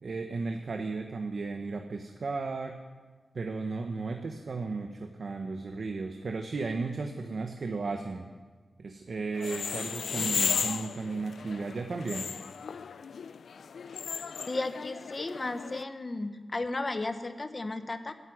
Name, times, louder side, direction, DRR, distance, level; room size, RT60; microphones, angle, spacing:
voice 1, 0.0-2.8 3.3-8.3 8.8-12.3, right 3 dB, 55° right, 5 dB, 1.1 m, -35 dB
sound 1, 9.3-15.8, left 6 dB, 90° left, 0.4 m, -35 dB
voice 2, 14.5-18.1, left 2 dB, 30° left, 9 dB, 1.0 m, -34 dB
15.0 x 9.7 x 9.7 m, 1.4 s
wide cardioid pair, 145°, 0 cm